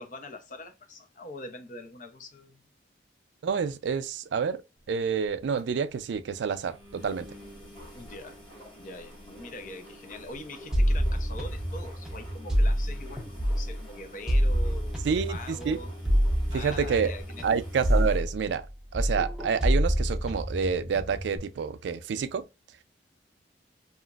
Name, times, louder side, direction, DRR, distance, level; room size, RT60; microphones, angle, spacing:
voice 1, 0.0-2.6 7.9-8.4 8.8-15.9 16.5-17.5, left 2 dB, 45° left, 0.5 m, -43 dB
voice 2, 3.4-4.6 4.9-7.3 15.0-15.8 16.5-17.1 17.4-18.7 18.9-22.4, right 6 dB, 80° right, 0.3 m, -28 dB
sound 1, 4.8-5.0 5.2-5.3 5.6-5.7 6.0-6.1 6.6-18.2, equal, 25° left, 1.2 m, -48 dB
sound 2, 10.7-13.8 14.3-18.7 18.9-21.4, equal, 5° right, 0.6 m, -27 dB
2.9 x 2.4 x 2.3 m
head